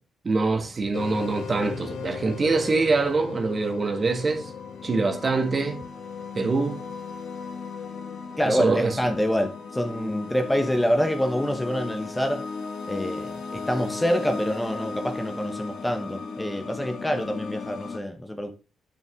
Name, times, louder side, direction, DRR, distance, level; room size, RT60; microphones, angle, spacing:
voice 1, 0.2-4.5 4.8-5.8 6.3-6.8 8.5-9.0, right 3 dB, 35° right, 1.7 m, -24 dB
sound 1, 0.9-18.0, left 5 dB, 70° left, 1.8 m, -36 dB
voice 2, 8.4-12.5 12.9-18.5, equal, 10° left, 1.1 m, -26 dB
8.8 x 6.3 x 3.7 m
cardioid pair, 90°, 0 cm